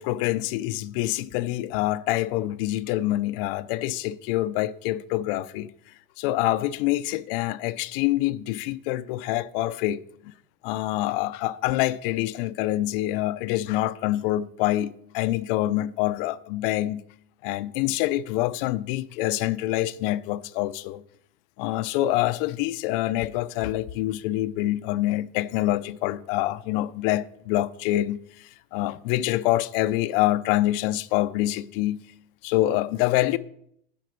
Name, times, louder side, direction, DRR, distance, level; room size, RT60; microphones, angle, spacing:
voice 1, 0.0-5.7 6.2-10.3 10.6-17.0 17.4-21.0 21.6-32.0 32.4-33.4, left 15 dB, 65° left, 0.6 m, -26 dB
10.0 x 5.2 x 4.6 m
supercardioid pair, 115°, 30 cm